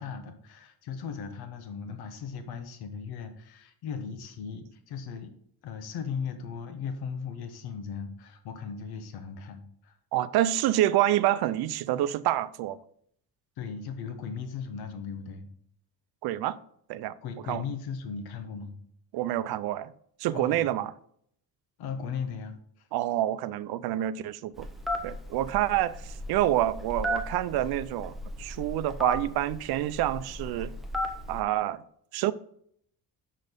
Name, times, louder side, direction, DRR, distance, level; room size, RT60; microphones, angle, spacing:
voice 1, 0.0-5.3 5.6-10.0 13.6-15.5 17.2-18.8 20.3-20.7 21.8-22.9, left 6 dB, 80° left, 1.2 m, -37 dB
voice 2, 10.1-12.8 16.2-16.6 16.9-17.1 17.5-17.6 19.1-19.9 20.2-20.9 22.9-24.7 25.0-30.7 31.3-31.8 32.1-32.3, right 13 dB, 80° right, 0.6 m, -27 dB
Telephone, 24.6-31.4, equal, ahead, 0.8 m, -35 dB
6.5 x 6.3 x 5.1 m
cardioid pair, 175°, 37 cm